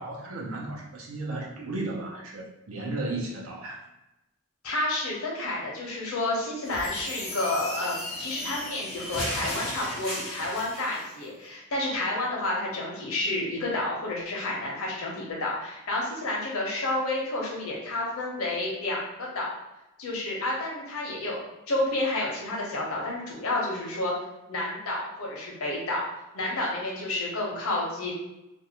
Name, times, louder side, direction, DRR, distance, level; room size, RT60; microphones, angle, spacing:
voice 1, 0.0-3.9, right 2 dB, 80° right, -2 dB, 0.7 m, -34 dB
voice 2, 4.6-19.5 20.0-21.4 21.7-24.1 24.5-26.0 26.3-28.1, left 2 dB, 90° left, -4 dB, 0.7 m, -30 dB
sound 1, 6.6-11.1, equal, ahead, 0.9 m, -35 dB
2.5 x 2.2 x 2.9 m, 0.94 s
head